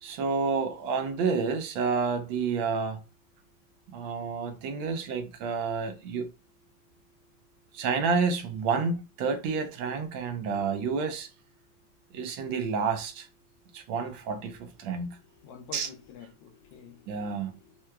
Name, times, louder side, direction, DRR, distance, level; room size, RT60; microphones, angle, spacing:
voice 1, 0.0-3.0 3.9-6.3 7.7-11.3 12.1-13.3 13.7-15.2 15.7-15.9 17.1-17.6, right 5 dB, 80° right, 1.3 m, -29 dB
voice 2, 14.8-17.8, left 8 dB, 75° left, 1.3 m, -50 dB
4.5 x 2.2 x 2.2 m
omnidirectional pair, 2.2 m